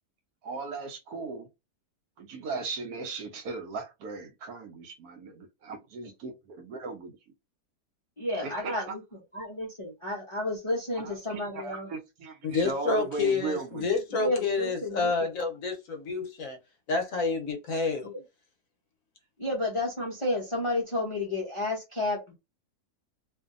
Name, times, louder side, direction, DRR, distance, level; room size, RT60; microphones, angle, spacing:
voice 1, 0.4-1.5 2.2-7.2 8.4-8.9 11.0-13.8, right 4 dB, 75° right, 1.0 m, -37 dB
voice 2, 8.2-9.0 9.3-11.9 14.1-15.3 18.0-18.2 19.4-22.4, left 2 dB, 35° left, 0.5 m, -31 dB
voice 3, 12.4-16.6 16.9-18.1, left 4 dB, 65° left, 1.0 m, -29 dB
2.6 x 2.5 x 2.4 m
omnidirectional pair, 1.7 m